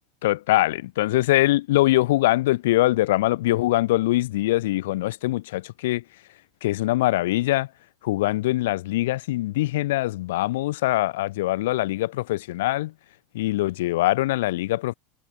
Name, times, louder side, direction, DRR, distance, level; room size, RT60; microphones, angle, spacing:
voice 1, 0.2-6.0 6.6-7.7 8.0-12.9 13.3-14.9, left 17 dB, 80° left, 0.8 m, -23 dB
supercardioid pair, 170°, 0 cm